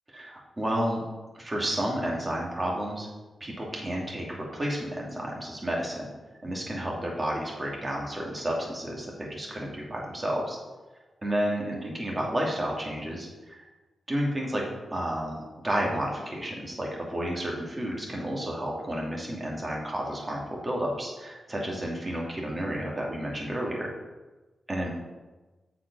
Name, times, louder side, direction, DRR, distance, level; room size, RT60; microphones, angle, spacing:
voice 1, 0.1-1.0 1.3-3.1 3.4-6.1 6.4-10.6 11.2-13.6 14.1-14.6 14.9-23.9 24.7-24.9, equal, 30° right, -2 dB, 2.5 m, -31 dB
7.4 x 5.0 x 5.4 m, 1.2 s
cardioid pair, 55°, 0 cm